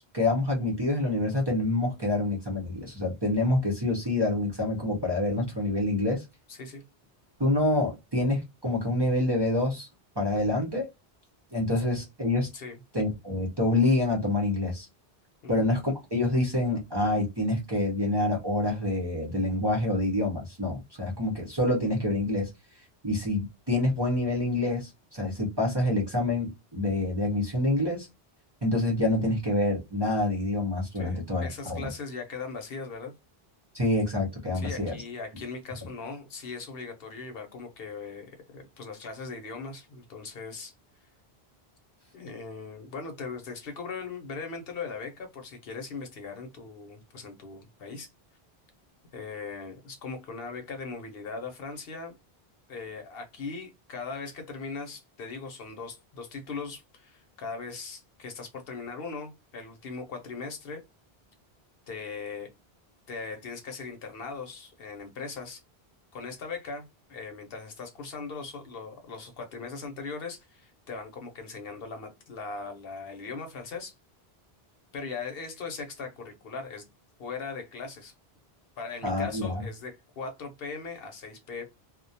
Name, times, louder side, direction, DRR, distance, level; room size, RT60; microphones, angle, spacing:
voice 1, 0.1-6.2 7.4-9.9 10.2-10.9 11.5-12.5 12.9-14.9 15.5-22.5 23.0-28.1 28.6-31.8 33.7-34.9 79.0-79.7, left 2 dB, 30° right, 0.6 m, -27 dB
voice 2, 6.5-6.8 12.5-12.8 15.4-15.6 30.9-33.1 34.5-40.7 42.1-48.1 49.1-52.2 52.7-60.8 61.9-62.5 63.1-65.6 66.1-73.9 74.9-76.9 77.2-78.1 78.8-81.6, left 4 dB, 70° left, 0.9 m, -39 dB
2.3 x 2.1 x 2.6 m
omnidirectional pair, 1.0 m